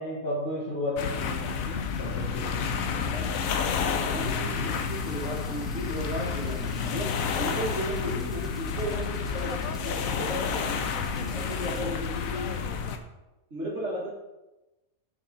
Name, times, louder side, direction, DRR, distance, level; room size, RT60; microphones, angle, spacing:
voice 1, 0.0-2.8 10.6-11.4, left 1 dB, 45° left, -6 dB, 1.7 m, -34 dB
sound 1, 1.0-13.0, left 6 dB, 80° left, 1.1 m, -30 dB
voice 2, 2.9-3.3 3.9-9.5 9.8-10.8 11.3-12.6 13.5-14.1, right 1 dB, 55° right, -4 dB, 2.1 m, -35 dB
sound 2, 4.7-11.8, equal, ahead, 1.5 m, -52 dB
10.0 x 4.8 x 4.0 m, 1.0 s
omnidirectional pair, 1.4 m